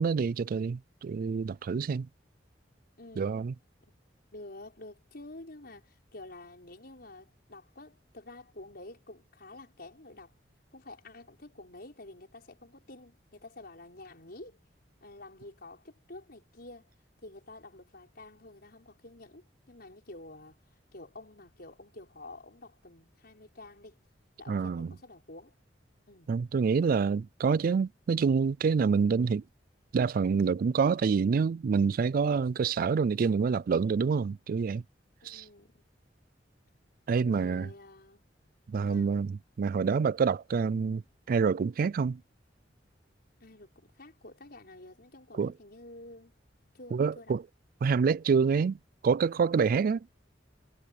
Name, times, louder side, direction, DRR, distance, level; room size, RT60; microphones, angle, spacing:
voice 1, 0.0-2.1 3.2-3.5 24.5-24.9 26.3-29.4 29.9-34.8 35.2-35.4 37.1-37.7 38.7-41.0 41.3-42.2 45.4-45.5 46.9-47.4 47.8-48.8 49.0-50.1, right 5 dB, 50° right, 0.3 m, -27 dB
voice 2, 3.0-3.3 3.8-3.9 4.3-10.3 10.7-14.6 15.0-16.9 17.2-20.6 20.9-24.0 24.4-25.5 26.1-26.3 35.2-35.8 37.2-38.2 38.8-39.2 43.4-46.3 46.7-47.4, left 2 dB, 60° left, 5.7 m, -49 dB
head